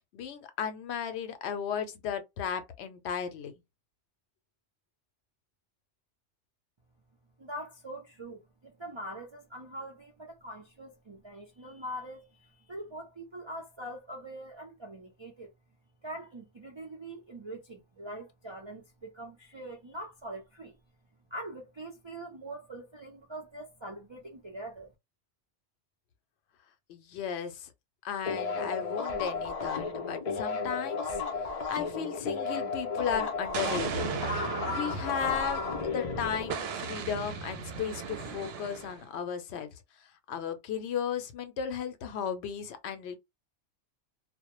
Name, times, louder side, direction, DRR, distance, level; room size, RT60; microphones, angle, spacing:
voice 1, 0.1-3.5 26.9-27.7 28.0-34.1 34.6-39.7 40.3-43.2, left 7 dB, 75° left, 0.8 m, -35 dB
voice 2, 7.4-15.5 16.0-20.8 21.3-24.9, right 1 dB, 50° right, 0.3 m, -43 dB
sound 1, 28.2-37.4, left 4 dB, 50° left, 0.4 m, -34 dB
Explosion, 33.5-36.0 36.5-39.1, right 7 dB, 70° right, 0.8 m, -36 dB
2.1 x 2.1 x 2.9 m
omnidirectional pair, 1.1 m